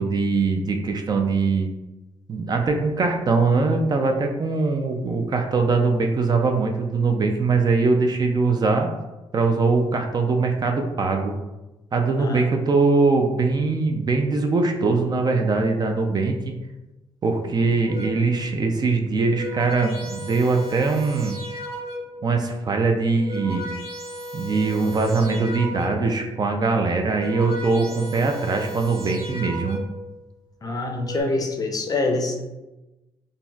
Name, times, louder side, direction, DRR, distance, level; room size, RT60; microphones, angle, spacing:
voice 1, 0.0-1.7 2.3-8.9 9.3-11.3 11.9-16.6 17.2-21.4 22.2-23.7 24.3-29.8, right 3 dB, 40° right, 4 dB, 0.4 m, -22 dB
sound 1, 17.9-18.4 19.1-22.3 23.0-26.2 26.9-30.1 30.8-31.2, equal, 75° right, 1.3 m, -35 dB
voice 2, 30.6-32.4, left 2 dB, 35° left, 3 dB, 0.5 m, -25 dB
3.9 x 2.1 x 2.3 m, 1.0 s
cardioid pair, 95°, 11 cm